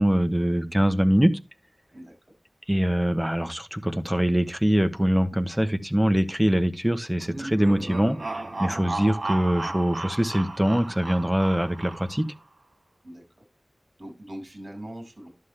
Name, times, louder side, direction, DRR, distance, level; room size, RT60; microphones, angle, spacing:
voice 1, 0.0-1.3 2.7-12.3, equal, 5° right, 1.1 m, -23 dB
sound 1, 7.3-12.4, right 2 dB, 60° right, 2.5 m, -35 dB
voice 2, 13.0-13.5 14.0-15.3, right 1 dB, 45° right, 5.5 m, -41 dB
11.5 x 7.3 x 3.3 m
wide cardioid pair, 60°, 0 cm